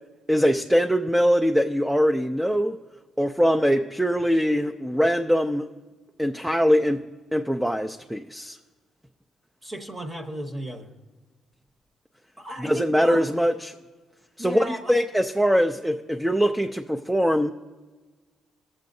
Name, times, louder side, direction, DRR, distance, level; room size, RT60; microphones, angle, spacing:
voice 1, 0.3-2.8 3.2-5.7 6.2-7.0 7.3-8.6 12.6-13.7 14.4-17.5, equal, 5° right, 4 dB, 0.4 m, -22 dB
voice 2, 9.6-10.9 12.4-13.3 14.4-15.0, equal, 25° right, 5 dB, 0.9 m, -34 dB
21.0 x 7.6 x 2.6 m, 1.3 s
cardioid pair, 90°, 0 cm